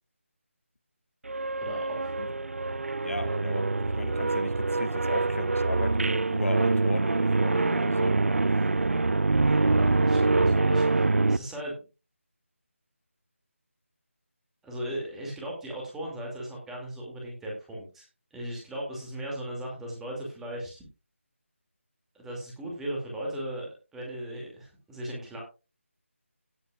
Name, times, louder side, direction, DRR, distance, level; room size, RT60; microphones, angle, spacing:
sound 1, 1.3-11.4, right 3 dB, 65° right, 0.4 m, -25 dB
voice 1, 1.6-2.1 9.4-11.8 14.6-20.8 22.1-25.4, right 1 dB, 5° right, 2.4 m, -37 dB
voice 2, 3.0-8.2, left 2 dB, 70° left, 0.9 m, -36 dB
17.0 x 8.7 x 2.4 m
figure-of-eight pair, 160°, 7 cm